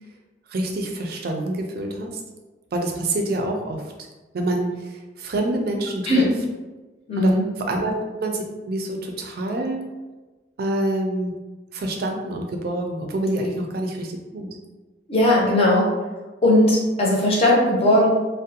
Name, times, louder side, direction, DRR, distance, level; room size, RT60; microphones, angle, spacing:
voice 1, 0.5-2.1 2.7-3.8 4.3-6.3 7.2-7.3 7.6-7.9 8.2-9.8 10.6-11.3 11.7-14.5, right 1 dB, 55° right, 2 dB, 0.4 m, -26 dB
voice 2, 7.1-7.4 15.1-15.8 16.4-18.1, left 1 dB, 35° left, -4 dB, 0.7 m, -18 dB
2.5 x 2.0 x 2.7 m, 1.2 s
head